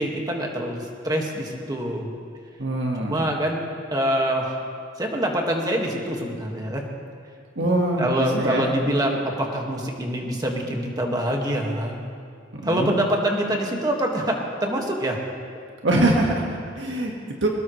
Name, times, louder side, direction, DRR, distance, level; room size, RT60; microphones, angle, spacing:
voice 1, 0.0-2.1 3.0-3.6 3.9-4.6 5.0-6.8 8.0-12.0 12.6-15.2, right 1 dB, 20° right, 0 dB, 1.8 m, -25 dB
voice 2, 2.6-3.2 7.6-8.0 8.3-8.7 12.5-12.9 15.8-17.5, right 1 dB, 70° right, -1 dB, 1.7 m, -23 dB
22.5 x 19.5 x 3.2 m, 2.2 s
head